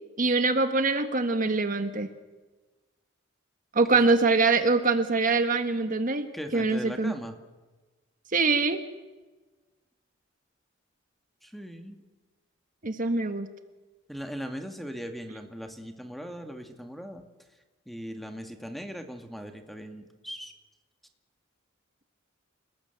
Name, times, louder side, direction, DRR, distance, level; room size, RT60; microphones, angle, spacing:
voice 1, 0.2-2.1 3.7-7.1 8.3-8.8 12.8-13.5, right 3 dB, 45° right, 8 dB, 1.4 m, -24 dB
voice 2, 6.3-7.3 11.4-12.0 14.1-17.2 17.9-20.5, equal, ahead, 5 dB, 2.1 m, -39 dB
29.0 x 19.0 x 8.0 m, 1.2 s
head